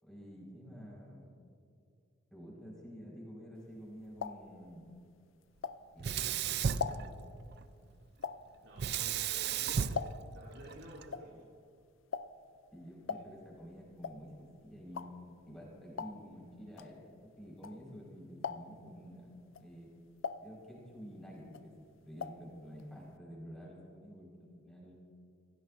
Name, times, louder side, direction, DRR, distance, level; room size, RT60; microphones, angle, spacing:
voice 1, 0.0-1.3 2.3-4.9 5.9-7.1 12.7-19.9 20.4-21.7 22.0-24.3 24.6-25.0, equal, 5° left, -5 dB, 4.9 m, -50 dB
sound 1, 3.6-6.2 6.5-10.5 10.8-18.1 18.4-18.9 19.4-21.1 21.4-22.5 22.8-22.9 23.1-23.2, left 6 dB, 75° left, 0.5 m, -42 dB
Sink (filling or washing), 6.0-7.6 8.8-11.0, right 7 dB, 50° right, 0.4 m, -34 dB
voice 2, 8.6-10.1 10.3-11.5, right 1 dB, 80° right, -7 dB, 3.4 m, -52 dB
27.0 x 17.0 x 2.6 m, 2.4 s
head